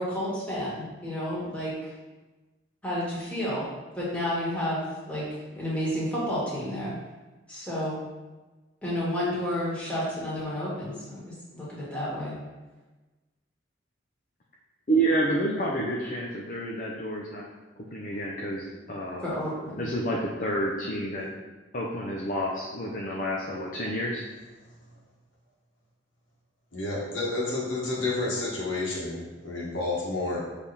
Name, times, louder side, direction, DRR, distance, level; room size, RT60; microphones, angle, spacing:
voice 1, 0.0-1.9 2.8-3.6 3.9-5.2 5.5-6.9 7.5-8.0 8.8-11.2 11.5-12.4 18.8-19.9, equal, 5° left, -8 dB, 1.9 m, -31 dB
voice 2, 14.9-17.4 17.8-19.3 19.8-21.3 21.7-24.2, right 1 dB, 45° left, -3 dB, 0.7 m, -29 dB
voice 3, 26.7-30.4, left 2 dB, 90° left, -4 dB, 1.7 m, -30 dB
6.9 x 3.5 x 4.2 m, 1.2 s
head